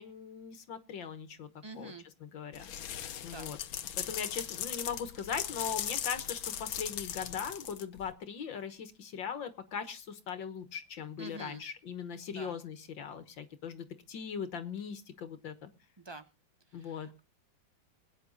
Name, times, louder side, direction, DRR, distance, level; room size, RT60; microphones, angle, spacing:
voice 1, 0.0-1.5 1.8-1.9 2.2-2.7 3.2-3.6 4.0-15.7 16.7-17.1, left 7 dB, 70° left, 10 dB, 2.0 m, -40 dB
voice 2, 1.6-2.0 3.3-3.5 11.2-11.6 12.3-12.5 16.0-16.2 16.7-17.2, right 2 dB, 20° right, 10 dB, 0.8 m, -46 dB
sound 1, 2.5-8.1, left 10 dB, 85° left, 1.7 m, -38 dB
21.5 x 9.4 x 4.0 m, 0.30 s
omnidirectional pair, 2.1 m